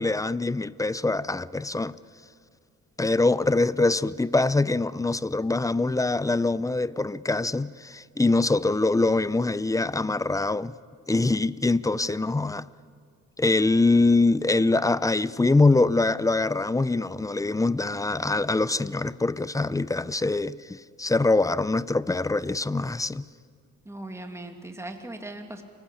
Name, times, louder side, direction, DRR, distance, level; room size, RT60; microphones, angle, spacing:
voice 1, 0.0-2.0 3.0-10.7 11.1-12.7 13.4-23.2, left 3 dB, 10° left, 0.6 m, -24 dB
voice 2, 23.8-25.6, right 1 dB, 10° right, 2.6 m, -38 dB
29.5 x 20.0 x 8.6 m
cardioid pair, 90°, 30 cm